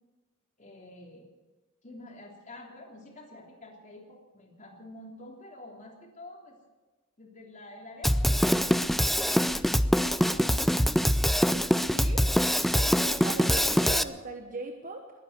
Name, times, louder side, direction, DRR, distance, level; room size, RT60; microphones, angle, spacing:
voice 1, 0.6-1.3 1.8-6.6 7.2-11.3 12.0-12.4, left 1 dB, 35° left, 0 dB, 3.2 m, -48 dB
Drum kit, 8.0-14.0, equal, ahead, 0.4 m, -24 dB
voice 2, 11.8-12.3 12.7-15.1, right 3 dB, 40° right, 4 dB, 1.1 m, -39 dB
21.5 x 9.7 x 6.7 m, 1.2 s
head